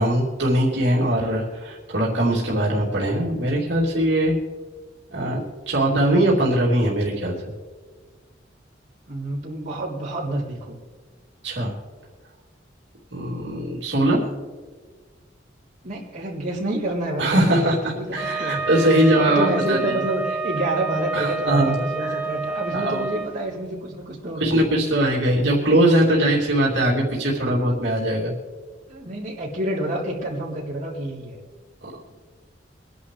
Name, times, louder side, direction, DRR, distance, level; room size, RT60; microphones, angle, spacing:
voice 1, 0.0-4.3 5.1-7.4 11.4-11.7 13.1-14.2 17.2-17.7 18.1-20.0 21.1-22.2 22.7-23.1 24.4-28.3, right 1 dB, 65° right, -4 dB, 2.8 m, -21 dB
voice 2, 9.1-10.8 15.8-24.6 25.2-25.3 28.9-31.4, right 1 dB, 40° right, -4 dB, 3.3 m, -28 dB
Wind instrument woodwind instrument, 18.1-23.3, right 3 dB, 10° right, 1.2 m, -28 dB
24.0 x 11.0 x 3.3 m, 1.4 s
head